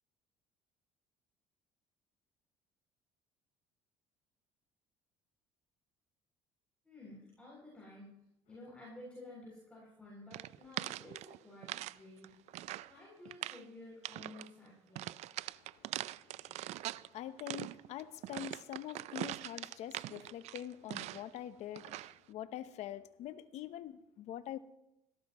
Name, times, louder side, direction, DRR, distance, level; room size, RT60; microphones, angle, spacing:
voice 1, 6.8-8.1 8.5-12.4 12.9-15.2, left 2 dB, 10° left, 7.2 m, -53 dB
sound 1, 10.3-12.0 12.2-12.9 13.3-13.6 14.0-14.5 15.0-17.1 17.4-21.4 21.8-22.2, right 16 dB, 65° right, 0.4 m, -42 dB
voice 2, 16.6-24.6, left 11 dB, 70° left, 1.0 m, -45 dB
18.5 x 16.0 x 3.1 m
supercardioid pair, 90°, 12 cm